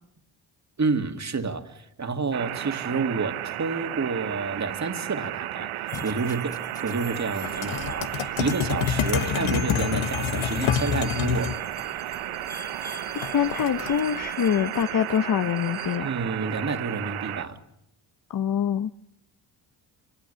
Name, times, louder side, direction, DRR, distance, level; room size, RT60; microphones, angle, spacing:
voice 1, 0.8-11.5 16.0-17.6, right 4 dB, 35° right, 2.5 m, -29 dB
sound 1, 2.3-17.5, right 13 dB, 90° right, 1.1 m, -34 dB
sound 2, 5.9-16.0, equal, 5° left, 2.4 m, -45 dB
sound 3, 7.4-11.6 13.2-14.0, left 10 dB, 85° left, 1.4 m, -27 dB
voice 2, 13.3-16.1 18.3-18.9, left 8 dB, 40° left, 0.9 m, -25 dB
26.5 x 26.0 x 6.9 m
cardioid pair, 75°, 48 cm